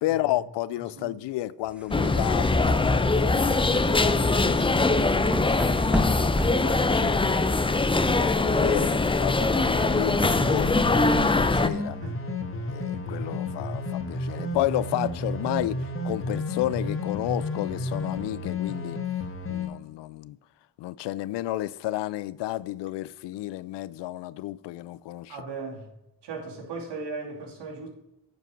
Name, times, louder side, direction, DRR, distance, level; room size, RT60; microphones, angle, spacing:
voice 1, 0.0-5.3 5.7-7.5 8.1-12.0 12.7-19.0 19.5-20.4 20.8-25.4, left 15 dB, 85° left, 0.5 m, -32 dB
sound 1, 1.7-7.6, equal, 5° right, 1.1 m, -34 dB
sound 2, 1.9-11.7, left 3 dB, 15° left, 0.6 m, -22 dB
sound 3, 10.1-19.7, left 2 dB, 30° left, 2.0 m, -31 dB
voice 2, 12.0-12.4 25.3-25.9 26.2-27.9, right 4 dB, 80° right, 2.5 m, -37 dB
9.1 x 5.5 x 6.0 m
cardioid pair, 70°, 41 cm